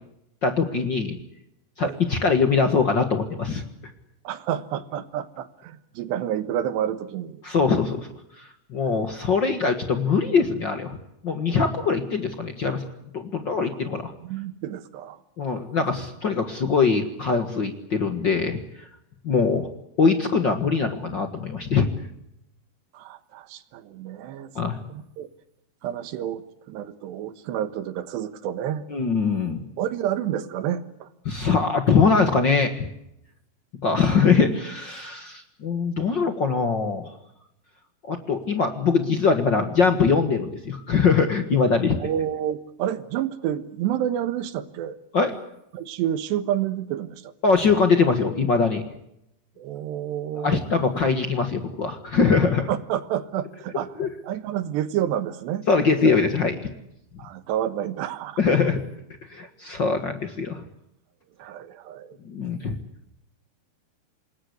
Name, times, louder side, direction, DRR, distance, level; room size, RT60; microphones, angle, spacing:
voice 1, 0.4-1.2 1.8-3.6 7.4-8.1 8.7-11.0 11.2-12.8 13.1-14.1 15.4-18.6 19.2-19.7 20.0-21.9 24.5-24.8 28.9-29.6 31.2-32.8 33.8-37.1 38.1-42.0 45.1-45.3 47.4-48.8 50.4-52.7 54.0-54.1 55.7-56.7 58.4-58.8 59.3-60.6 62.2-62.7, left 5 dB, 65° left, 7 dB, 1.1 m, -22 dB
voice 2, 4.2-7.4 8.8-9.0 14.2-15.2 22.9-24.5 24.9-25.3 25.8-28.9 29.8-31.1 42.0-45.0 45.7-47.6 49.6-50.6 52.7-53.9 54.2-55.7 57.2-58.4 61.4-62.2, right 10 dB, 80° right, 13 dB, 3.5 m, -29 dB
27.0 x 21.0 x 8.2 m, 0.81 s
omnidirectional pair, 4.8 m